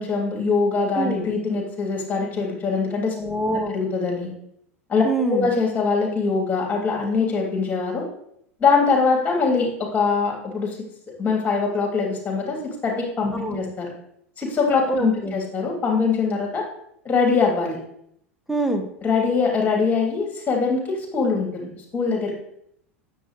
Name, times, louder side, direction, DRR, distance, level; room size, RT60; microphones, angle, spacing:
voice 1, 0.0-3.2 3.7-4.3 4.9-8.0 8.6-10.8 11.2-13.9 14.4-16.6 17.0-17.8 19.0-22.3, left 4 dB, 20° left, -1 dB, 3.2 m, -23 dB
voice 2, 3.2-3.7 5.0-5.5 13.3-13.7 14.9-15.3 18.5-18.8, right 2 dB, ahead, 5 dB, 1.3 m, -25 dB
9.9 x 7.4 x 3.2 m, 0.72 s
figure-of-eight pair, 80°, 7 cm